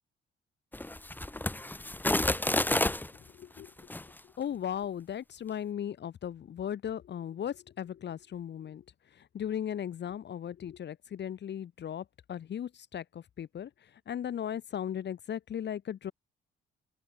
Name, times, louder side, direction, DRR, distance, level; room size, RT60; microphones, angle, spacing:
sound 1, 0.7-3.1 3.8-4.0, left 1 dB, 10° left, 2.0 m, -30 dB
voice 1, 3.3-3.7 4.4-8.8 9.1-16.1, left 9 dB, 60° left, 3.4 m, -37 dB
open air
cardioid pair, 90°, 20 cm